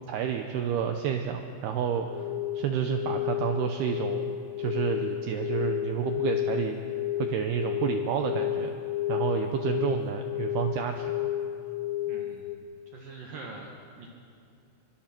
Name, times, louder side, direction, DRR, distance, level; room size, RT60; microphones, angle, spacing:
voice 1, 0.1-2.2 2.6-6.8 7.2-8.7 9.1-11.1, right 8 dB, 85° right, 5 dB, 2.3 m, -30 dB
sound 1, 2.1-12.6, left 12 dB, 90° left, 3.6 m, -32 dB
voice 2, 12.1-12.5 12.9-13.7 14.0-14.1, right 3 dB, 60° right, 1 dB, 2.5 m, -43 dB
25.0 x 22.5 x 6.0 m, 2.5 s
omnidirectional pair, 5.8 m